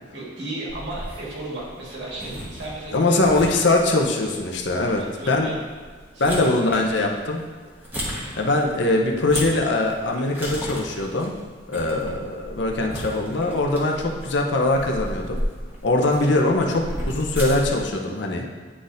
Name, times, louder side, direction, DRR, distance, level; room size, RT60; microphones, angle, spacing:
voice 1, 0.1-3.4 5.0-5.6 6.1-6.8 8.1-8.4, right 2 dB, 65° right, -4 dB, 1.7 m, -35 dB
sound 1, 0.7-17.8, equal, 10° right, 1.1 m, -35 dB
voice 2, 2.9-5.5 6.2-7.4 8.4-11.3 11.7-15.4 15.8-18.5, left 2 dB, 65° left, 1 dB, 0.7 m, -22 dB
9.8 x 4.1 x 2.6 m, 1.4 s
head